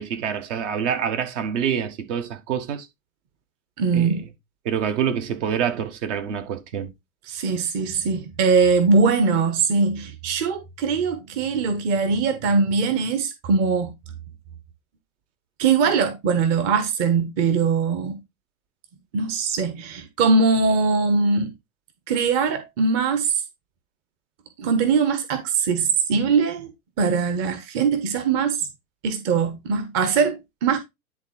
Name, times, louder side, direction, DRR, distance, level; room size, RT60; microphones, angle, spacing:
voice 1, 0.0-2.9 3.9-4.2 4.7-6.9, right 8 dB, 55° right, 1.7 m, -26 dB
voice 2, 3.8-4.2 7.3-13.9 15.6-18.2 19.1-21.5 22.1-23.4 24.6-26.7 27.0-28.7 29.0-30.8, right 5 dB, 35° right, 1.4 m, -21 dB
10.5 x 3.8 x 4.3 m
hypercardioid pair, 115°, 43 cm